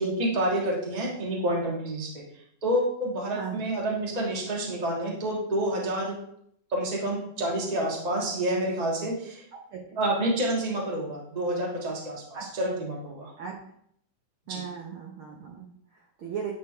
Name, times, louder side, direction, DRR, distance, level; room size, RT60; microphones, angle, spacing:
voice 1, 0.0-2.2 2.6-6.2 6.7-9.4 10.0-12.2 12.5-13.3 14.5-14.6, right 1 dB, 25° right, -3 dB, 0.8 m, -28 dB
voice 2, 3.3-3.6 9.5-10.0 12.3-12.5 13.4-13.5 14.5-16.5, right 7 dB, 80° right, 0 dB, 1.2 m, -38 dB
9.7 x 4.3 x 3.2 m, 0.68 s
omnidirectional pair, 3.6 m